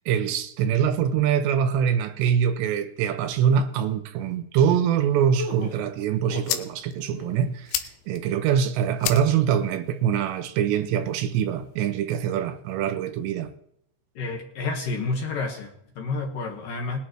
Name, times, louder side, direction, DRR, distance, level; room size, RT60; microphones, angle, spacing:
voice 1, 0.1-13.5, right 8 dB, 85° right, 2.9 m, -24 dB
sound 1, 5.4-6.7 7.0-7.5, left 2 dB, 40° left, 4.4 m, -37 dB
sound 2, 5.8-11.8, left 11 dB, 80° left, 3.0 m, -36 dB
voice 2, 14.2-17.0, left 3 dB, 60° left, 2.6 m, -30 dB
20.5 x 11.5 x 3.1 m
omnidirectional pair, 5.1 m